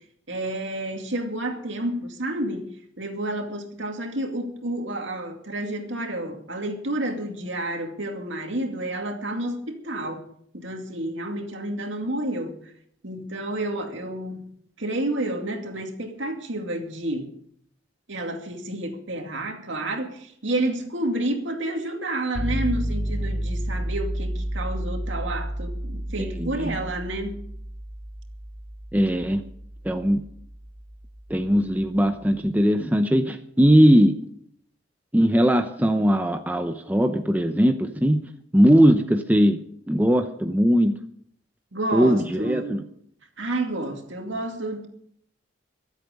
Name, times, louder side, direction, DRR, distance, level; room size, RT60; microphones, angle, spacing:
voice 1, 0.3-10.3 10.5-12.6 13.0-14.5 14.8-17.3 18.1-27.4 41.7-42.8 43.4-44.9, right 1 dB, 70° right, 2.5 m, -30 dB
sound 1, 22.4-32.2, right 1 dB, 30° right, 4.3 m, -31 dB
voice 2, 26.2-26.7 28.9-29.4 29.8-30.2 31.3-34.1 35.1-38.2 38.5-39.6 39.9-40.9 41.9-42.8, equal, 10° right, 0.7 m, -20 dB
23.5 x 8.3 x 5.2 m
head